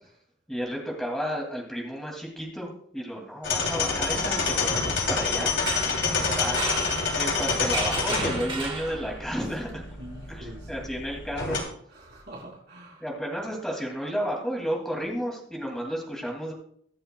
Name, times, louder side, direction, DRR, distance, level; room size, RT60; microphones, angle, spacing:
voice 1, 0.5-5.6 6.2-6.7 7.2-9.8 10.3-11.6 13.0-16.5, equal, 5° left, -1 dB, 2.4 m, -32 dB
sound 1, 3.4-11.6, left 4 dB, 65° left, 2.9 m, -28 dB
sound 2, 5.5-9.4, right 3 dB, 25° right, 1.5 m, -34 dB
voice 2, 10.0-10.9 11.9-13.1, right 1 dB, 55° right, -4 dB, 4.4 m, -45 dB
22.5 x 7.7 x 2.3 m, 0.66 s
head